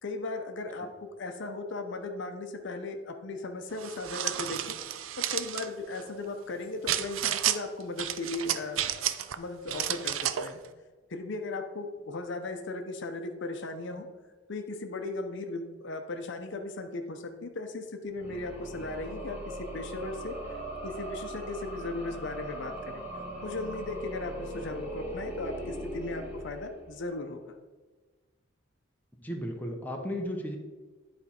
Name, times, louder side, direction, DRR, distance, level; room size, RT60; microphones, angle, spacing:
voice 1, 0.0-4.7 5.2-9.0 9.4-10.6 11.1-14.1 14.5-23.0 23.4-27.5, left 2 dB, 60° left, 6 dB, 0.7 m, -37 dB
sound 1, 3.8-5.7 6.9-7.6 8.0-9.4 9.7-10.5, right 11 dB, 70° right, 0.4 m, -31 dB
sound 2, 18.1-27.1, right 1 dB, 10° right, 1.8 m, -40 dB
voice 2, 29.2-30.6, equal, 10° left, 1 dB, 0.8 m, -34 dB
10.5 x 4.3 x 4.3 m, 1.3 s
head